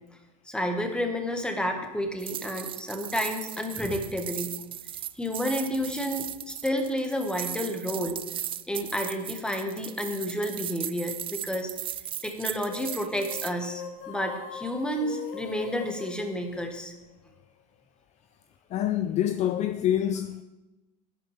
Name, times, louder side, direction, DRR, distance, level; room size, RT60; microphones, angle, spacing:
voice 1, 0.5-4.5 5.2-8.2 8.7-11.7 12.2-16.9, equal, 5° left, 1.7 m, -30 dB
sound 1, 2.2-13.5, right 11 dB, 25° right, 0.4 m, -37 dB
sound 2, 12.7-17.3, left 7 dB, 55° left, 1.5 m, -41 dB
voice 2, 18.7-20.4, left 11 dB, 35° left, 0.5 m, -26 dB
11.5 x 10.5 x 3.5 m
hypercardioid pair, 95°, 21 cm